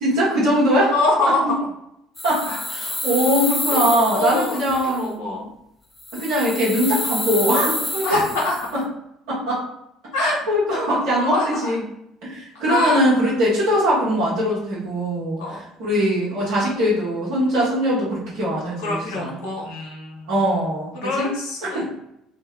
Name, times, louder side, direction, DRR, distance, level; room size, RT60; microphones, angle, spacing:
voice 1, 0.0-0.9 1.4-1.5 2.2-5.5 6.1-8.3 8.7-8.8 9.3-9.6 10.1-11.8 12.2-19.4 20.3-21.3 21.6-21.9, equal, 70° right, -8 dB, 1.2 m, -21 dB
voice 2, 0.9-1.4 2.4-2.6 3.7-4.6 4.9-5.5 8.0-8.5 10.1-10.4 10.9-11.7 12.7-13.0 15.4-15.6 18.8-20.3 21.0-21.8, left 2 dB, 75° left, -1 dB, 0.9 m, -25 dB
sound 1, 2.2-5.0 6.0-8.7, left 2 dB, 15° left, 0.6 m, -28 dB
2.7 x 2.1 x 3.7 m, 0.79 s
hypercardioid pair, 60°, 0 cm